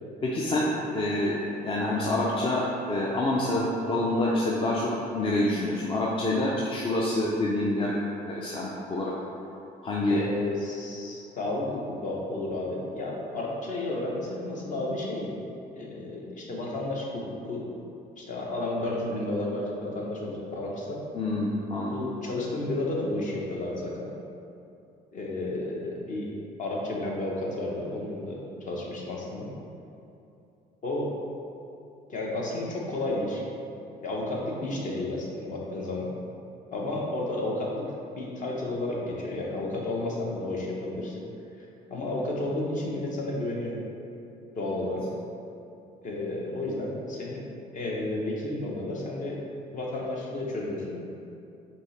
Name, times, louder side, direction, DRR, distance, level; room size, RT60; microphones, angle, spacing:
voice 1, 0.2-8.0 8.2-9.1 9.8-10.2 21.1-22.0, left 1 dB, 30° left, -4 dB, 0.5 m, -27 dB
voice 2, 10.1-15.3 15.7-17.7 18.2-21.0 21.9-24.1 25.1-29.5 30.8-31.1 32.1-33.4 34.0-36.1 36.7-37.9 38.2-41.1 41.6-43.8 44.6-45.0 46.0-47.4 47.7-49.4 49.7-51.0, left 2 dB, 50° left, -2 dB, 0.9 m, -32 dB
5.2 x 2.8 x 3.2 m, 2.7 s
cardioid pair, 110°, 17 cm